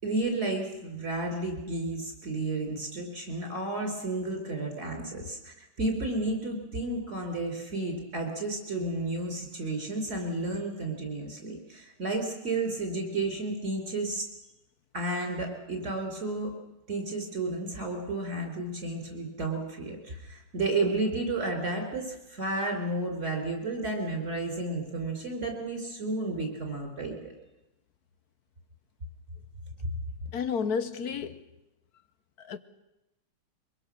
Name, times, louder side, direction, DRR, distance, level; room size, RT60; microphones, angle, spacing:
voice 1, 0.0-14.3 14.9-16.5 16.9-27.3 29.8-29.9, right 2 dB, 40° right, 5.0 m, -32 dB
voice 2, 30.3-31.4 32.4-32.6, left 6 dB, 60° left, 1.4 m, -31 dB
23.0 x 22.0 x 6.5 m
omnidirectional pair, 2.0 m